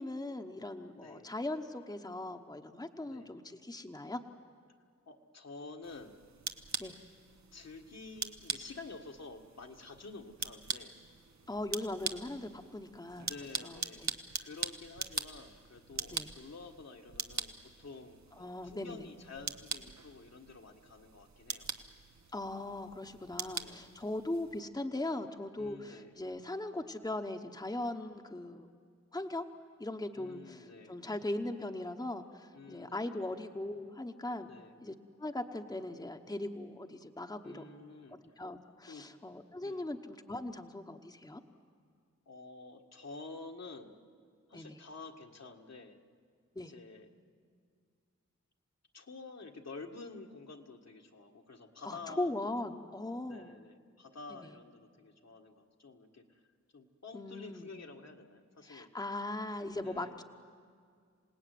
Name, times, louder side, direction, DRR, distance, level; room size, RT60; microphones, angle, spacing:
voice 1, 0.0-4.2 6.8-7.0 11.5-13.3 13.6-14.1 16.1-16.3 18.4-19.1 22.3-28.7 29.1-29.4 29.8-34.5 34.8-37.7 38.4-41.4 44.5-44.8 46.5-46.7 51.8-53.5 54.3-54.5 57.1-57.7 58.6-60.2, left 2 dB, 15° left, 5 dB, 1.1 m, -39 dB
voice 2, 0.9-1.3 3.1-3.3 5.1-6.2 7.5-11.0 13.3-14.0 14.4-21.7 23.5-23.9 25.6-26.1 30.2-31.0 32.5-33.3 34.5-34.8 37.4-38.5 38.8-39.0 39.6-39.9 42.3-44.0 44.5-46.0 46.6-47.1 48.9-52.5 53.3-56.4 56.7-58.9 59.8-60.2, left 3 dB, 60° left, 3 dB, 1.7 m, -50 dB
sound 1, 5.8-24.6, right 5 dB, 70° right, 1.1 m, -43 dB
27.0 x 18.0 x 9.4 m, 2.1 s
wide cardioid pair, 60°, 29 cm